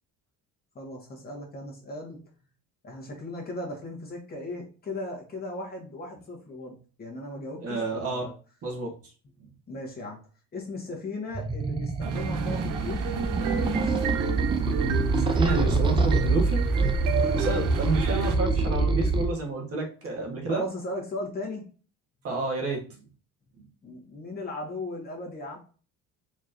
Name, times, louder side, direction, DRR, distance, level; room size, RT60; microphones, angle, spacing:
voice 1, 0.7-2.2 2.8-8.3 9.7-10.2 10.5-14.0 17.2-17.5 20.5-21.6 23.8-25.6, left 2 dB, 25° left, -2 dB, 1.3 m, -37 dB
voice 2, 7.6-8.3 8.6-8.9 15.2-16.6 17.4-20.6 22.2-23.0 23.6-23.7, right 2 dB, 40° right, 1 dB, 1.2 m, -30 dB
sound 1, 11.3-19.2, right 3 dB, 15° right, 0.4 m, -25 dB
sound 2, 12.0-18.4, right 6 dB, 60° right, 0.7 m, -32 dB
4.4 x 3.0 x 2.5 m, 0.38 s
cardioid pair, 120°, 35 cm